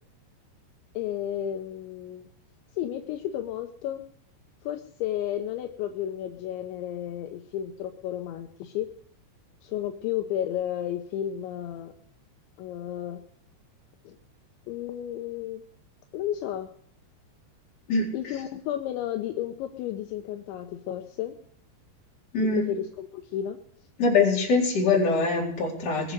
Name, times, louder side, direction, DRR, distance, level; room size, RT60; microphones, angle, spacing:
voice 1, 0.9-2.3 2.8-4.0 4.6-8.9 9.6-11.9 12.6-13.2 14.1-14.2 14.7-15.6 16.1-16.7 18.1-21.4 22.5-23.6, left 11 dB, 80° left, 5 dB, 3.1 m, -32 dB
voice 2, 22.3-22.7 24.0-26.1, left 4 dB, 35° left, -3 dB, 5.0 m, -23 dB
22.0 x 7.6 x 6.7 m, 0.66 s
omnidirectional pair, 5.4 m